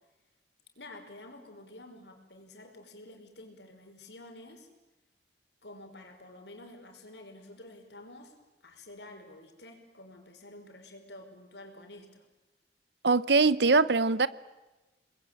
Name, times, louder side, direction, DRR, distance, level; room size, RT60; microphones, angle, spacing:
voice 1, 0.8-4.7 5.6-8.3 8.6-12.3, left 1 dB, 80° left, 5 dB, 5.3 m, -49 dB
voice 2, 13.0-14.3, right 3 dB, 75° right, 17 dB, 1.0 m, -22 dB
29.0 x 21.0 x 9.1 m, 1.1 s
head